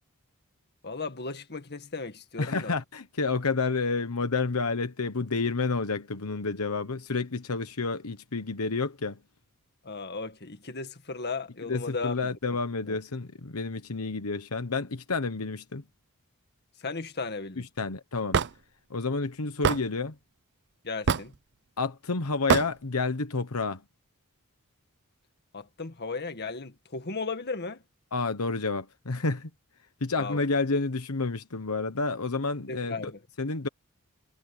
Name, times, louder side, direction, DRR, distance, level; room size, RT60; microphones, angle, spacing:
voice 1, 0.8-2.7 9.8-12.6 12.8-13.0 16.8-17.6 20.8-21.3 25.5-27.8 30.2-30.4 32.7-33.2, left 4 dB, 50° left, 1.9 m, -36 dB
voice 2, 2.4-9.2 11.7-15.8 17.8-18.4 18.9-20.1 21.8-23.8 28.1-29.5 30.0-33.1 33.4-33.7, left 3 dB, 75° left, 1.2 m, -30 dB
Hammer / Wood, 18.3-18.5 19.6-19.8 21.1-21.4 22.5-22.7, right 6 dB, 55° right, 0.6 m, -23 dB
head